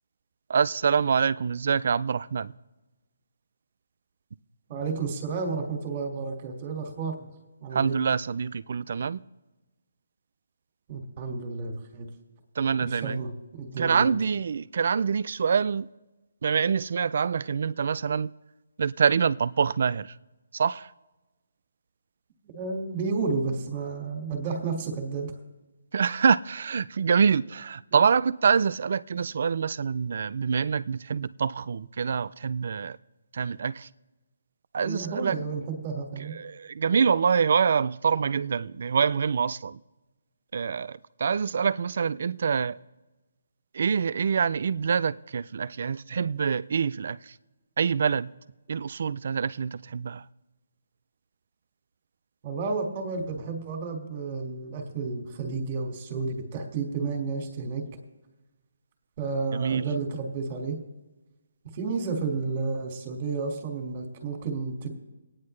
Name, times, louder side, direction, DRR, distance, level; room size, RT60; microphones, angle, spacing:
voice 1, 0.5-2.5 7.7-9.2 12.6-13.2 13.8-15.9 16.4-18.3 18.8-20.1 20.5-20.9 25.9-33.0 33.3-33.9 34.7-35.4 36.2-39.8 40.5-42.8 43.7-47.3 47.8-48.3 48.7-50.2 59.5-59.9, right 6 dB, 55° right, 0.4 m, -25 dB
voice 2, 4.7-7.3 7.6-8.0 10.9-12.1 12.9-14.1 22.5-25.3 34.8-36.3 52.4-57.9 59.2-60.8 61.7-64.9, right 4 dB, 30° right, 1.9 m, -31 dB
22.5 x 9.4 x 3.2 m
hypercardioid pair, 165°, 0 cm